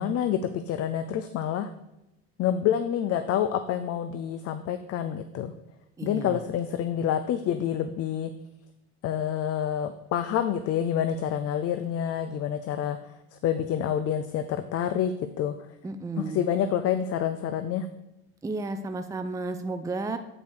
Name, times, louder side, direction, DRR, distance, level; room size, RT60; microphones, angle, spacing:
voice 1, 0.0-1.7 2.4-5.5 6.0-8.3 9.0-15.8 16.2-17.9, left 9 dB, 50° left, 11 dB, 0.6 m, -28 dB
voice 2, 6.0-6.4 15.8-16.4 18.4-20.2, right 3 dB, 10° right, 7 dB, 0.6 m, -32 dB
8.6 x 5.1 x 4.7 m, 0.91 s
supercardioid pair, 85°, 31 cm